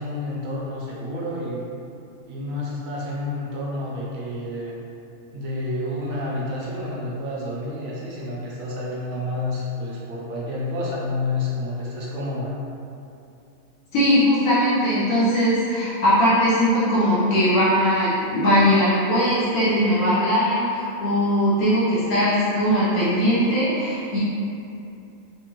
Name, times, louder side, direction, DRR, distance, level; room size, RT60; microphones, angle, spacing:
voice 1, 0.0-1.7 2.3-4.8 5.3-12.5, left 2 dB, 75° right, -6 dB, 1.1 m, -29 dB
voice 2, 13.9-24.2, equal, 85° left, -10 dB, 1.2 m, -20 dB
4.1 x 2.4 x 3.0 m, 2.7 s
omnidirectional pair, 1.5 m